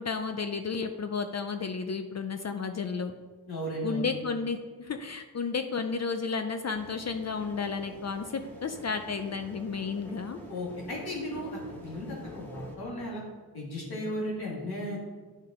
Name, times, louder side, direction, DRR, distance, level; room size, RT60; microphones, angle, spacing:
voice 1, 0.0-3.1 3.8-10.4, left 5 dB, 45° left, 7 dB, 0.5 m, -32 dB
voice 2, 3.5-4.1 10.5-13.2 13.5-15.0, equal, 85° left, -4 dB, 2.7 m, -35 dB
sound 1, 6.7-12.8, equal, 5° left, 1.6 m, -47 dB
10.0 x 5.8 x 4.3 m, 1.4 s
wide cardioid pair, 150°, 37 cm